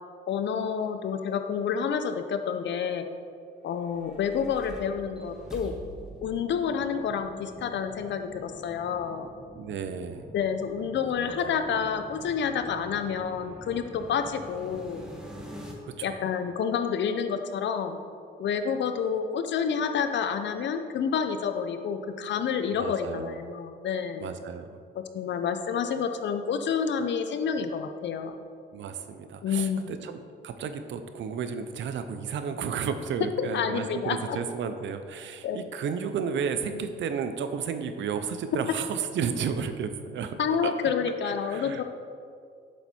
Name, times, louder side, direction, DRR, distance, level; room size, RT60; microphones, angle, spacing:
voice 1, 0.3-3.1 3.6-5.7 6.2-9.3 10.3-15.0 16.0-18.0 18.4-24.3 25.1-28.3 29.4-29.9 33.4-34.4 35.4-35.6 40.4-41.8, left 7 dB, 65° left, 8 dB, 0.7 m, -29 dB
sound 1, 3.7-15.7, equal, 5° right, 1.4 m, -46 dB
voice 2, 9.6-10.2 11.2-11.5 15.8-16.1 22.7-23.4 24.2-24.8 28.7-40.7 41.1-41.8, right 6 dB, 70° right, 9 dB, 0.7 m, -33 dB
8.0 x 7.2 x 4.4 m, 2.2 s
cardioid pair, 90°, 20 cm